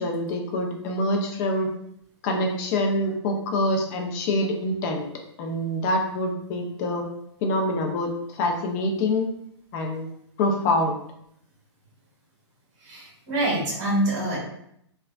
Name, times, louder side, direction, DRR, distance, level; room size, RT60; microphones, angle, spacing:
voice 1, 0.0-1.7 2.2-5.1 5.4-7.0 7.4-8.1 8.4-9.3 9.7-10.1 10.4-10.9, left 1 dB, 35° left, 3 dB, 0.5 m, -25 dB
voice 2, 12.8-14.4, right 1 dB, 35° right, -5 dB, 1.5 m, -25 dB
3.2 x 2.2 x 2.3 m, 0.74 s
hypercardioid pair, 135°, 15 cm